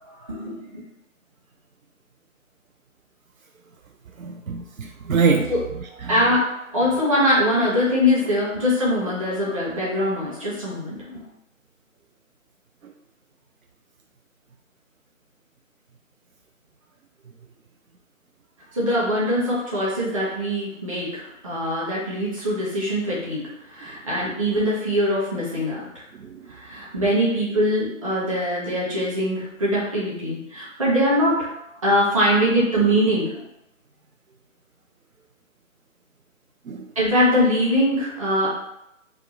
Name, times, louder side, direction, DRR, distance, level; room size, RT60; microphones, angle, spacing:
voice 1, 0.2-0.8 5.5-5.6 5.9-11.3 18.7-26.0 26.5-31.5 31.8-33.4 36.9-38.5, equal, 25° right, -7 dB, 1.0 m, -22 dB
voice 2, 4.2-5.5 6.0-6.2 12.8-12.9 26.2-26.5 36.7-36.9, right 5 dB, 80° right, 4 dB, 0.5 m, -24 dB
3.5 x 2.4 x 4.2 m, 0.82 s
figure-of-eight pair, 150°, 41 cm